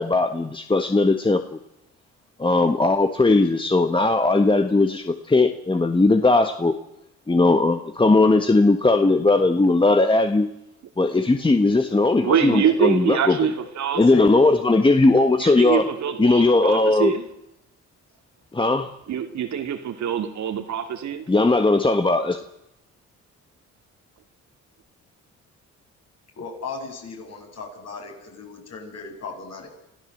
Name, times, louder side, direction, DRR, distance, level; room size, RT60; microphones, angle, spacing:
voice 1, 0.0-1.4 2.4-6.7 7.3-10.5 11.0-13.4 14.0-15.8 16.2-17.1 18.5-18.9 21.3-22.4, left 2 dB, 15° left, 1.4 m, -18 dB
voice 2, 12.2-14.1 15.4-17.3 19.1-21.2, right 8 dB, 65° right, 2.6 m, -24 dB
voice 3, 26.4-29.7, left 4 dB, 60° left, 7.5 m, -36 dB
27.0 x 15.0 x 7.9 m
cardioid pair, 90°, 30 cm